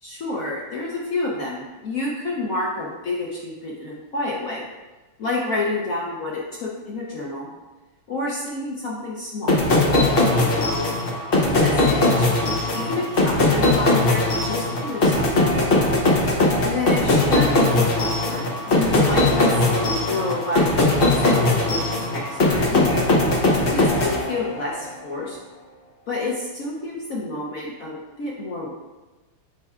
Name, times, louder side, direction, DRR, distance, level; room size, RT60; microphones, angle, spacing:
voice 1, 0.0-4.6 5.2-7.5 8.1-9.6 10.1-10.9 11.4-12.3 12.7-15.3 16.6-20.7 21.2-23.1 23.7-25.4 26.1-28.8, left 2 dB, 60° left, -4 dB, 0.9 m, -29 dB
sound 1, 9.5-24.8, left 2 dB, 85° left, 0.5 m, -20 dB
9.4 x 4.4 x 2.4 m, 1.2 s
omnidirectional pair, 2.3 m